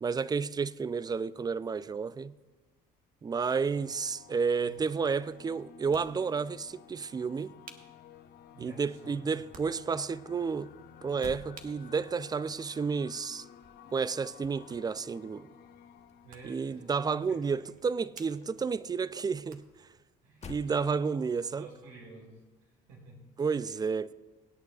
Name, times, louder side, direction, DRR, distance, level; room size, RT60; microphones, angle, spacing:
voice 1, 0.0-2.3 3.2-7.5 8.6-10.7 11.0-13.5 13.9-15.5 16.4-19.7 20.4-21.7 23.4-24.1, right 5 dB, 20° right, 0.4 m, -31 dB
sound 1, 3.6-18.9, left 10 dB, 55° left, 0.7 m, -55 dB
sound 2, 3.6-20.0, right 5 dB, 45° right, 1.2 m, -60 dB
sound 3, 4.3-6.3 6.5-8.5 8.7-17.4 17.7-21.4, left 5 dB, 35° left, 1.0 m, -55 dB
voice 2, 8.5-9.2 9.5-9.6 16.2-16.8 17.3-17.4 20.2-23.3 23.6-23.9, right 3 dB, 85° right, 4.2 m, -52 dB
23.5 x 8.8 x 2.4 m
supercardioid pair, 70°, 19 cm